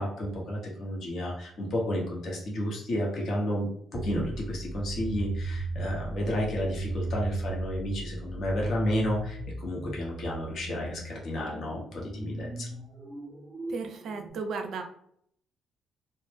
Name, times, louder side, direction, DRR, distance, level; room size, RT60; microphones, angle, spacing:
voice 1, 0.0-12.7, left 1 dB, 60° left, -2 dB, 0.8 m, -32 dB
sound 1, 3.9-14.3, right 2 dB, 20° right, 0.5 m, -36 dB
voice 2, 13.7-14.8, right 4 dB, 70° right, 5 dB, 0.4 m, -35 dB
2.1 x 2.0 x 3.1 m, 0.67 s
cardioid pair, 90°, 0 cm